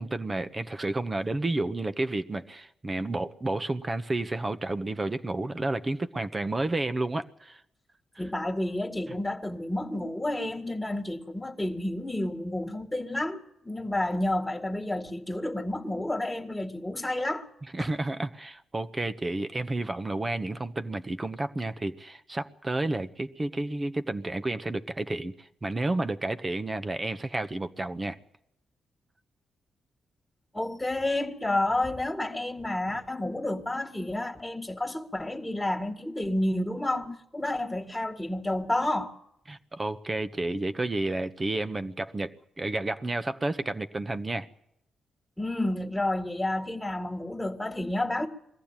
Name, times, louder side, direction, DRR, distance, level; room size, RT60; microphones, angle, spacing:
voice 1, 0.0-7.6 17.7-28.2 39.5-42.3 42.6-44.5, right 2 dB, 30° right, 1.2 m, -31 dB
voice 2, 8.2-17.5 17.8-17.9 30.5-39.1 45.4-48.3, left 1 dB, 10° left, 2.0 m, -30 dB
22.0 x 15.0 x 9.0 m
hypercardioid pair, 45°, 0 cm